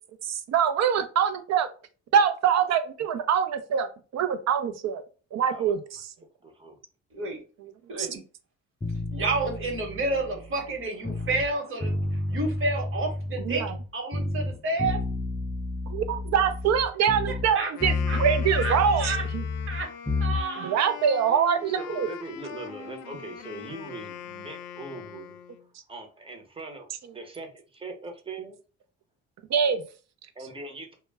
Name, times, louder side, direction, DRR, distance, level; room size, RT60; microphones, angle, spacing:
voice 1, 0.2-1.7 2.1-5.0 5.3-5.8 8.0-8.1 13.4-13.8 15.9-19.5 20.6-22.1 29.5-29.8, right 7 dB, 60° right, 10 dB, 0.5 m, -24 dB
voice 2, 6.4-6.8 21.6-25.4 25.9-28.6 30.4-30.9, right 3 dB, 20° right, 3 dB, 0.7 m, -41 dB
sound 1, 8.8-11.5 11.8-13.9 14.1-17.5 17.8-20.4, left 3 dB, 10° left, 0.4 m, -30 dB
voice 3, 9.1-12.0 12.3-13.6 13.9-15.0 17.5-17.7 18.1-18.2 18.5-18.7 19.0-19.2 19.7-19.9 20.2-20.8, right 2 dB, 45° right, 1 dB, 1.1 m, -29 dB
Wind instrument woodwind instrument, 17.6-25.7, left 8 dB, 85° left, 0.5 m, -42 dB
2.1 x 2.1 x 3.3 m, 0.36 s
cardioid pair, 90°, 30 cm